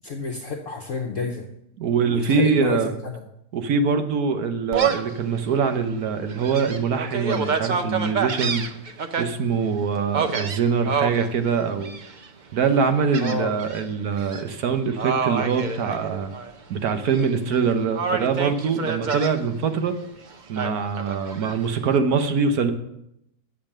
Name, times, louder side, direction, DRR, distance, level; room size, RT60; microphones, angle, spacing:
voice 1, 0.0-1.5 2.1-3.2 13.2-13.5, left 3 dB, 55° left, 2 dB, 1.1 m, -29 dB
voice 2, 1.8-2.9 3.5-8.7 9.2-11.9 12.5-16.3 16.7-19.9 20.5-22.7, right 5 dB, 65° right, 8 dB, 1.4 m, -23 dB
Gull seagull, 4.7-5.2 5.7-5.8 6.3-9.2 10.1-11.3 11.8-12.3 13.1-13.8 14.2-14.4 15.0-16.5 16.9-17.6 17.9-19.3 20.6-21.6, right 5 dB, 85° right, 0.4 m, -27 dB
7.4 x 7.2 x 7.3 m, 0.79 s
omnidirectional pair, 1.8 m